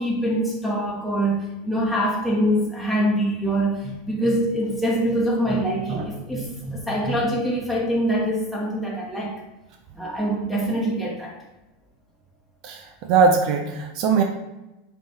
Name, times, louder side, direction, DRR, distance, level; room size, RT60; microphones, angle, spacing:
voice 1, 0.0-9.4 10.0-11.3, right 1 dB, 5° left, -5 dB, 1.0 m, -24 dB
voice 2, 12.6-14.2, right 5 dB, 50° right, 4 dB, 0.5 m, -20 dB
5.1 x 3.1 x 2.8 m, 1.0 s
figure-of-eight pair, 80°, 0 cm